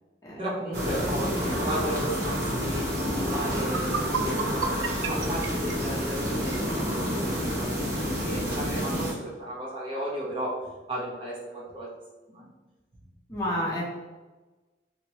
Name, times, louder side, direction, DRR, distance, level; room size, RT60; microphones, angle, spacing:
voice 1, 0.4-10.6 10.9-11.9 12.3-12.5, right 1 dB, 30° right, -6 dB, 0.8 m, -35 dB
sound 1, 0.7-9.1, equal, 60° right, 1.0 m, -29 dB
voice 2, 1.3-1.6 13.3-13.8, left 1 dB, 20° left, -6 dB, 0.9 m, -30 dB
sound 2, 3.6-6.7, right 5 dB, 85° right, 0.3 m, -33 dB
2.9 x 2.9 x 2.9 m, 1.2 s
head